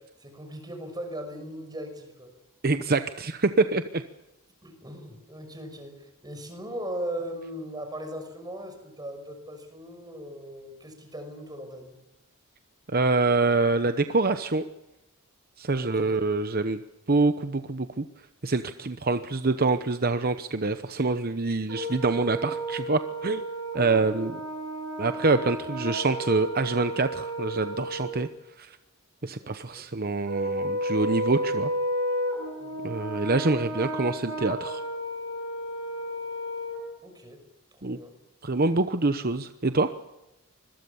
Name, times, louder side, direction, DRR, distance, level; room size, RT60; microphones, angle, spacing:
voice 1, 0.0-2.3 4.6-11.9 15.8-16.2 24.0-24.3 29.4-29.8 32.6-32.9 37.0-37.4 37.7-38.1, equal, 20° right, 6 dB, 5.8 m, -39 dB
voice 2, 2.6-4.0 12.9-14.6 15.6-16.8 17.1-18.0 18.4-23.4 23.7-24.4 25.0-28.3 28.6-28.8 29.2-31.7 32.8-34.8 37.8-38.0 38.4-39.9, right 3 dB, 45° right, 10 dB, 0.9 m, -25 dB
Brass instrument, 21.7-28.2 30.3-36.8, right 1 dB, 65° right, 8.0 m, -32 dB
26.0 x 22.0 x 7.1 m, 0.95 s
head